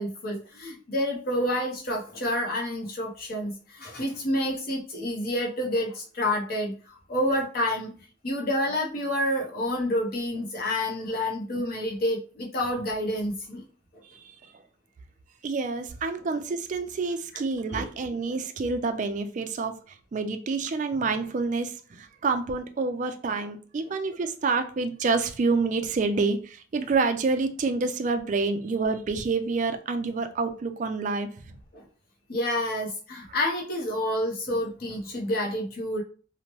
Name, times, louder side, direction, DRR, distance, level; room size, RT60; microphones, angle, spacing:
voice 1, 0.0-7.9 8.2-13.7 13.9-14.0 17.7-17.9 31.7-31.8 32.3-36.0, left 1 dB, 50° left, 0 dB, 0.8 m, -29 dB
voice 2, 15.4-31.3, right 4 dB, 40° right, 8 dB, 0.3 m, -28 dB
2.8 x 2.1 x 3.0 m, 0.39 s
head